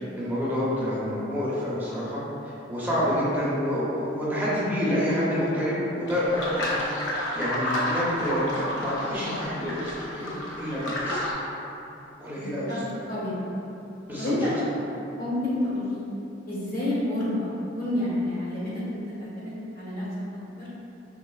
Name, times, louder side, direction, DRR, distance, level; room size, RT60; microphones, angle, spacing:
voice 1, 0.0-2.2 2.7-11.2 12.2-12.7 14.1-14.5, equal, 10° right, -9 dB, 0.8 m, -28 dB
sound 1, 6.1-11.3, left 1 dB, 80° left, 0.8 m, -31 dB
voice 2, 12.4-12.8 13.1-13.4 14.2-14.5 15.1-16.0 16.5-17.5 17.8-20.1 20.6-20.7, left 1 dB, 50° left, -8 dB, 1.3 m, -29 dB
5.2 x 3.5 x 2.3 m, 3.0 s
head